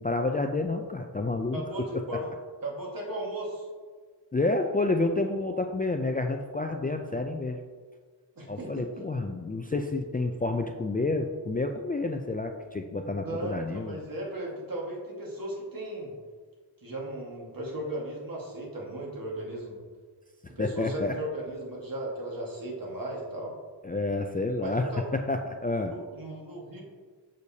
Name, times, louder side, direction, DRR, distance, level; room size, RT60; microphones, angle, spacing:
voice 1, 0.0-1.9 4.3-7.6 8.5-14.0 20.6-21.1 23.8-25.9, left 2 dB, 20° left, 4 dB, 0.3 m, -29 dB
voice 2, 1.5-2.3 2.6-3.7 8.4-9.0 13.2-16.1 16.8-19.8 20.5-23.5 24.6-25.1 25.9-26.8, right 1 dB, 50° right, -2 dB, 1.7 m, -36 dB
6.7 x 6.4 x 2.8 m, 1.5 s
wide cardioid pair, 70°, 45 cm